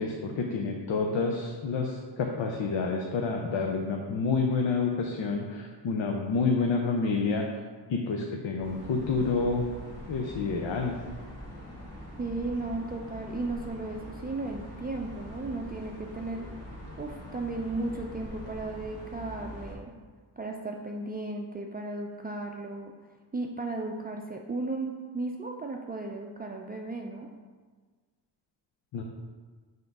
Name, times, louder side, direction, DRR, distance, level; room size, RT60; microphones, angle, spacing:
voice 1, 0.0-7.4 7.9-9.6 10.1-10.9 28.9-29.0, left 4 dB, 80° left, 1 dB, 0.7 m, -28 dB
sound 1, 8.6-19.8, left 1 dB, 35° left, 1.6 m, -43 dB
voice 2, 12.2-16.4 17.0-19.9 20.4-22.9 23.3-27.3, right 2 dB, 20° right, 1 dB, 0.4 m, -35 dB
5.7 x 3.8 x 5.3 m, 1.5 s
wide cardioid pair, 100°, 44 cm